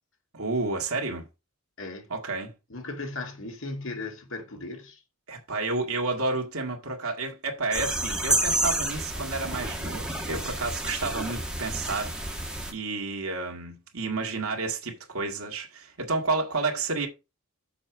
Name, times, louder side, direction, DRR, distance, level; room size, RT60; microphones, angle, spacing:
voice 1, 0.3-1.3 2.1-2.5 5.3-17.1, right 3 dB, 80° right, 1.7 m, -31 dB
voice 2, 1.8-2.1 2.7-5.0, left 2 dB, 65° left, 2.0 m, -37 dB
sound 1, 7.7-12.7, right 1 dB, 5° right, 1.4 m, -30 dB
6.9 x 4.6 x 5.9 m
head